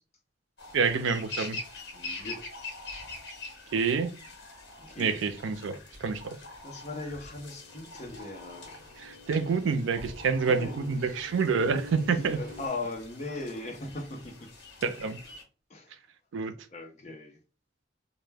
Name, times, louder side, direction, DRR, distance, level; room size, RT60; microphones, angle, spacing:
sound 1, 0.6-15.4, left 2 dB, 60° left, 1.1 m, -45 dB
voice 1, 0.7-1.6 3.7-4.1 5.0-6.4 9.0-12.4 14.8-15.2 16.3-16.5, right 5 dB, 85° right, 0.4 m, -27 dB
voice 2, 1.9-2.4 4.8-5.2 6.6-8.8 10.4-11.2 12.1-14.5 15.7-15.9 16.7-17.4, left 2 dB, 35° left, 0.6 m, -39 dB
sound 2, 5.9-12.7, left 1 dB, 50° right, 0.7 m, -50 dB
2.1 x 2.1 x 3.3 m
head